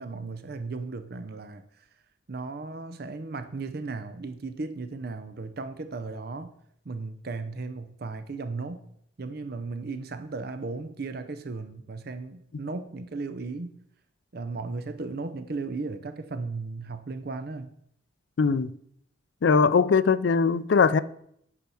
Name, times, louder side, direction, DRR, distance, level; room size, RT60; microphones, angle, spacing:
voice 1, 0.0-1.9 2.3-6.5 6.8-8.8 9.2-13.7 14.3-17.7, right 3 dB, 50° right, 0.6 m, -36 dB
voice 2, 18.4-18.7 19.4-21.0, left 5 dB, 65° left, 0.4 m, -21 dB
9.8 x 4.6 x 6.9 m
head